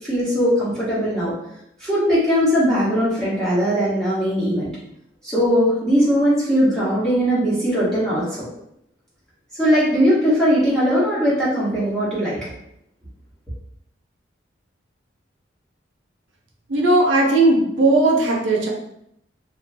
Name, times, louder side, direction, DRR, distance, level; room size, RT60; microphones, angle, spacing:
voice 1, 0.0-1.3 1.8-4.7 5.2-8.5 9.5-12.5, equal, 5° left, -10 dB, 1.0 m, -19 dB
voice 2, 16.7-18.7, right 2 dB, 80° right, -1 dB, 0.6 m, -17 dB
2.6 x 2.2 x 3.3 m, 0.77 s
head